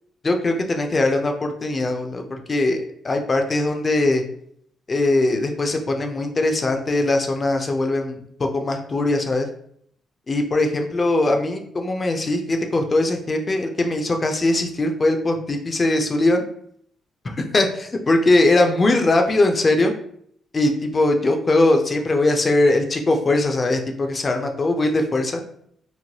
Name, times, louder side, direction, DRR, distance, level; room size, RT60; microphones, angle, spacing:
voice 1, 0.2-4.2 4.9-9.5 10.3-16.4 17.4-19.9 20.5-25.4, left 2 dB, 30° left, 4 dB, 0.4 m, -20 dB
3.1 x 2.1 x 2.8 m, 0.66 s
cardioid pair, 90°, 0 cm